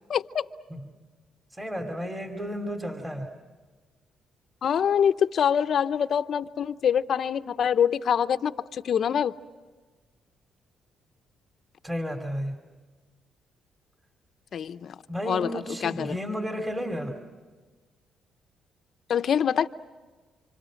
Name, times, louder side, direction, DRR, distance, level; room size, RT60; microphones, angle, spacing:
voice 1, 0.1-0.5 4.6-9.3 14.5-14.9 15.2-16.1 19.1-19.7, left 8 dB, 60° left, 0.7 m, -25 dB
voice 2, 1.5-3.3 11.8-12.6 15.1-17.2, equal, 15° right, 2.8 m, -32 dB
29.0 x 26.0 x 6.4 m
cardioid pair, 90°, 0 cm